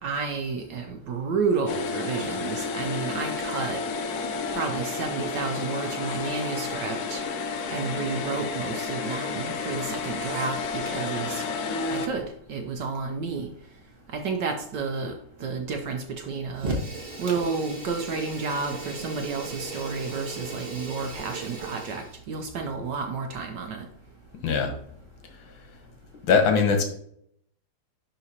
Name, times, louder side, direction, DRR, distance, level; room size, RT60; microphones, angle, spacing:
voice 1, 0.0-3.8 4.5-7.2 7.7-11.4 11.9-13.5 14.1-15.1 15.4-16.8 17.2-23.9, right 4 dB, 70° right, 4 dB, 1.1 m, -31 dB
sound 1, 1.7-12.1, left 4 dB, 90° left, 0.8 m, -31 dB
Fire, 16.5-22.2, right 2 dB, 35° right, 1.0 m, -36 dB
voice 2, 26.3-26.8, left 5 dB, 70° left, 5 dB, 1.7 m, -20 dB
11.0 x 3.9 x 2.8 m, 0.68 s
omnidirectional pair, 2.3 m